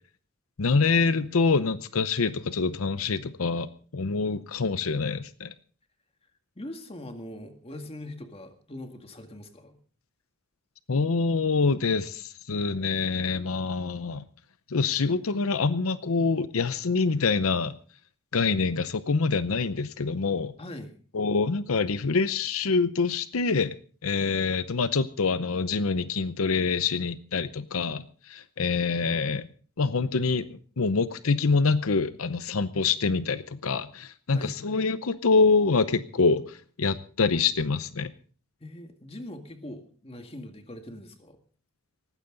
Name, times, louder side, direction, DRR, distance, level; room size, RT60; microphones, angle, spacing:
voice 1, 0.6-3.7 3.9-5.5 10.9-14.2 14.7-17.7 18.3-20.5 21.1-23.7 24.0-29.5 29.8-38.1, left 4 dB, 85° left, 13 dB, 0.7 m, -25 dB
voice 2, 6.6-9.8 20.6-20.9 34.3-34.6 38.6-41.4, left 1 dB, 30° left, 6 dB, 2.0 m, -41 dB
18.5 x 15.0 x 3.9 m, 0.43 s
head